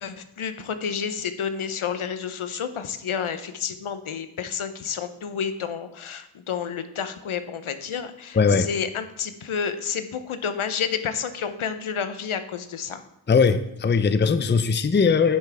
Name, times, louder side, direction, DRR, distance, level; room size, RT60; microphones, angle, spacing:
voice 1, 0.0-13.0, left 7 dB, 75° left, 10 dB, 0.8 m, -30 dB
voice 2, 8.3-8.7 13.3-15.4, left 5 dB, 20° left, 11 dB, 0.5 m, -20 dB
10.5 x 5.8 x 3.4 m, 0.81 s
cardioid pair, 45°, 49 cm